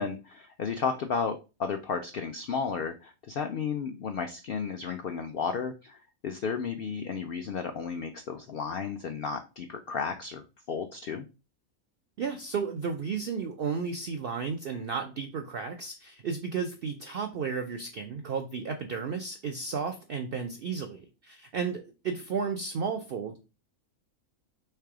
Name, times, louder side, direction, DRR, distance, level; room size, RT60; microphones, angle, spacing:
voice 1, 0.0-11.3, left 6 dB, 80° left, 6 dB, 0.5 m, -33 dB
voice 2, 12.2-23.4, right 5 dB, 75° right, 6 dB, 0.5 m, -33 dB
3.3 x 3.3 x 4.7 m, 0.30 s
omnidirectional pair, 1.5 m